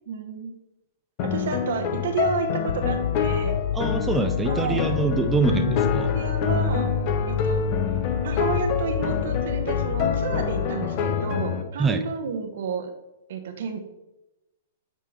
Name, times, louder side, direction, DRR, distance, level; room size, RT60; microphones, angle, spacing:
voice 1, 0.1-0.5 1.2-3.6 4.5-4.9 5.9-6.9 7.3-7.6 8.2-12.9 13.3-13.8, right 6 dB, 65° right, 6 dB, 1.0 m, -31 dB
sound 1, 1.2-11.6, left 6 dB, 45° left, 0.7 m, -27 dB
sound 2, 2.7-11.7, left 10 dB, 70° left, 0.3 m, -30 dB
voice 2, 3.7-6.1 11.8-12.0, right 4 dB, 15° right, 7 dB, 0.4 m, -24 dB
8.6 x 3.4 x 3.3 m, 0.95 s
hypercardioid pair, 115°, 0 cm